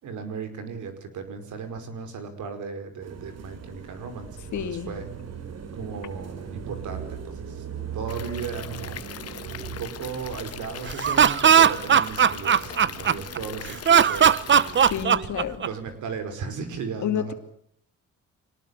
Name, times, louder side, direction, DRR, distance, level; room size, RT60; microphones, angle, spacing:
voice 1, 0.0-5.1 5.7-7.6 7.9-9.0 9.6-14.8 15.6-17.3, right 5 dB, 75° right, 5.1 m, -36 dB
sound 1, 3.0-15.6, right 7 dB, 55° right, 3.1 m, -40 dB
voice 2, 4.5-5.0 14.8-15.7 17.0-17.3, left 9 dB, 70° left, 2.7 m, -30 dB
Stream / Liquid, 8.1-15.0, left 9 dB, 55° left, 1.4 m, -41 dB
Laughter, 10.9-13.4 13.9-15.9, right 8 dB, 40° right, 0.9 m, -18 dB
25.0 x 19.0 x 8.4 m
cardioid pair, 90°, 30 cm